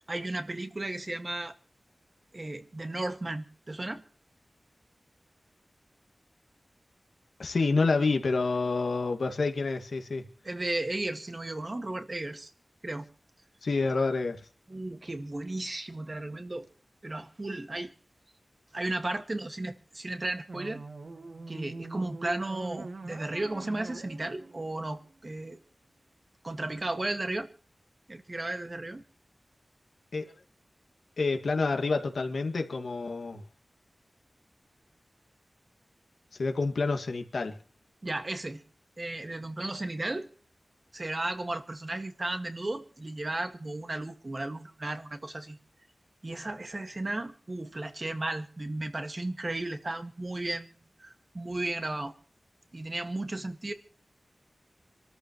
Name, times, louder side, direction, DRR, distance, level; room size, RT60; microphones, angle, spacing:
voice 1, 0.1-1.5 2.3-4.0 10.4-12.5 12.8-13.1 14.7-16.7 17.0-17.9 18.7-20.8 21.5-25.6 26.4-27.5 28.1-29.0 38.0-38.6 39.0-40.3 40.9-45.6 46.2-52.1 52.7-53.7, right 2 dB, 40° right, 1.9 m, -34 dB
voice 2, 7.4-10.3 13.6-14.4 30.1-30.3 31.2-33.4 36.4-37.6, left 3 dB, 85° left, 2.1 m, -28 dB
sound 1, 20.5-25.6, right 3 dB, 65° right, 1.7 m, -43 dB
26.5 x 13.5 x 3.1 m
wide cardioid pair, 80°, 0 cm